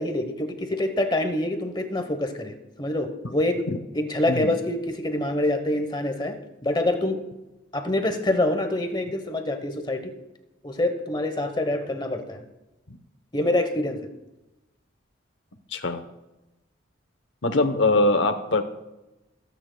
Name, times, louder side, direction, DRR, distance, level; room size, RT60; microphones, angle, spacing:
voice 1, 0.0-3.6 3.9-7.2 7.7-10.1 10.6-12.4 13.3-14.1, left 1 dB, 25° left, 7 dB, 0.9 m, -26 dB
voice 2, 15.7-16.0 17.4-18.6, left 2 dB, 75° left, 9 dB, 0.9 m, -22 dB
25.5 x 9.1 x 2.2 m, 0.97 s
head